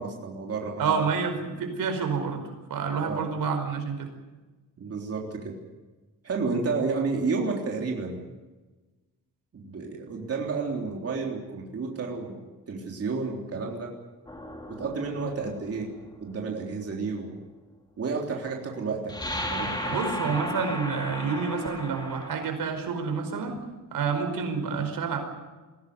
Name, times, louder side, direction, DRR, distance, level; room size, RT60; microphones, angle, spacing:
voice 1, 0.0-1.1 3.0-3.3 4.8-5.5 6.2-8.2 9.5-12.4 12.7-13.9 14.7-15.9 16.2-17.3 18.0-19.1 19.5-20.0 20.3-20.4, right 4 dB, 45° right, 0 dB, 3.6 m, -31 dB
voice 2, 0.8-2.4 2.7-4.1 19.9-23.6 23.9-25.2, right 5 dB, 85° right, 6 dB, 5.0 m, -28 dB
sound 1, 14.3-16.1 19.1-22.5, left 1 dB, 15° left, 3.5 m, -35 dB
22.5 x 17.0 x 9.6 m, 1.2 s
wide cardioid pair, 155°, 33 cm